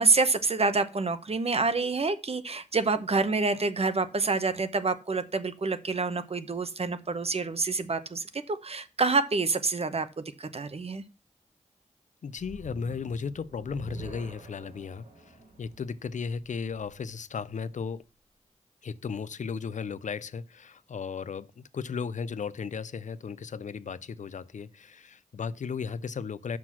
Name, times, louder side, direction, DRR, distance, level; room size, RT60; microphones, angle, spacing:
voice 1, 0.0-11.0, right 3 dB, 55° right, 0.9 m, -27 dB
voice 2, 12.2-18.0 18.8-26.6, left 5 dB, 80° left, 0.4 m, -35 dB
sound 1, 12.3-17.6, right 3 dB, 80° right, 3.5 m, -48 dB
6.1 x 6.0 x 6.0 m
wide cardioid pair, 80°, 13 cm